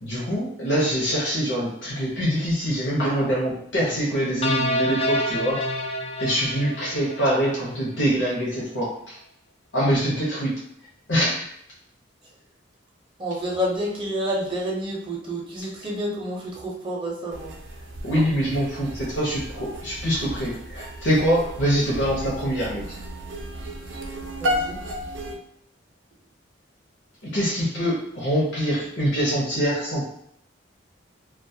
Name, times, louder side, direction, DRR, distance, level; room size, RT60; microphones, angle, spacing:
voice 1, 0.0-5.6 6.2-9.2 9.7-10.6 11.1-11.5 18.0-22.9 27.2-30.0, equal, 70° left, -6 dB, 0.7 m, -24 dB
sound 1, 4.4-7.7, equal, 35° left, 0.3 m, -27 dB
voice 2, 13.2-17.6 24.4-24.8, equal, 25° right, -3 dB, 0.5 m, -29 dB
sound 2, 17.3-25.4, equal, 80° right, 0.5 m, -33 dB
2.2 x 2.1 x 2.6 m, 0.72 s
head